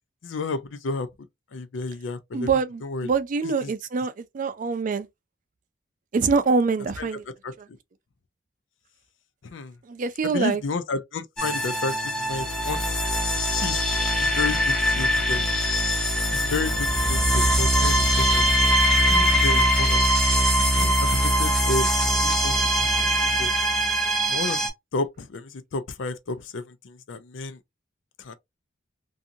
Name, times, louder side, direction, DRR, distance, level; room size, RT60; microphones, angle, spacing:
voice 1, 0.2-1.1 1.5-2.5 2.8-3.1 3.6-3.7 7.4-7.5 9.4-9.7 10.2-13.0 13.5-13.8 14.2-15.4 16.3-18.5 19.1-20.0 20.6-21.9 22.2-23.5 24.3-27.6 28.2-28.3, left 3 dB, 75° left, 0.5 m, -32 dB
voice 2, 2.3-5.1 6.1-7.2 7.6-7.7 9.8-10.6, right 4 dB, 45° right, 0.4 m, -25 dB
sound 1, 11.4-24.7, equal, 5° left, 0.7 m, -22 dB
2.6 x 2.5 x 2.6 m
head